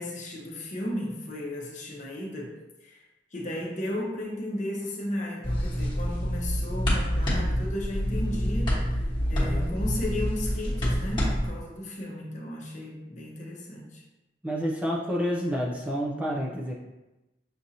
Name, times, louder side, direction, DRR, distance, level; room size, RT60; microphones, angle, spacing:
voice 1, 0.0-3.0 3.3-14.0, left 1 dB, 40° left, -2 dB, 0.8 m, -35 dB
sound 1, 5.4-11.5, equal, 25° left, 1.2 m, -27 dB
voice 2, 9.3-9.8 14.4-16.7, equal, 5° right, -3 dB, 0.4 m, -29 dB
6.0 x 2.6 x 2.7 m, 1.0 s
head